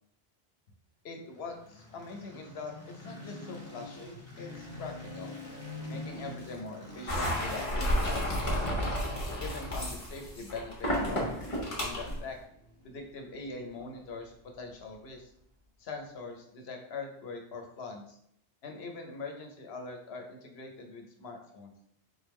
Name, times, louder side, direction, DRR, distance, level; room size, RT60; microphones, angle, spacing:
voice 1, 1.0-5.3 5.9-8.8 9.4-11.3 11.8-12.4 12.8-15.3 15.8-18.2 18.6-21.7, left 3 dB, 80° left, 3 dB, 1.0 m, -42 dB
sound 1, 1.3-15.4, left 2 dB, 15° left, 1.1 m, -47 dB
sound 2, 7.1-12.2, equal, 35° left, 1.1 m, -31 dB
4.0 x 3.4 x 3.1 m, 0.71 s
omnidirectional pair, 1.1 m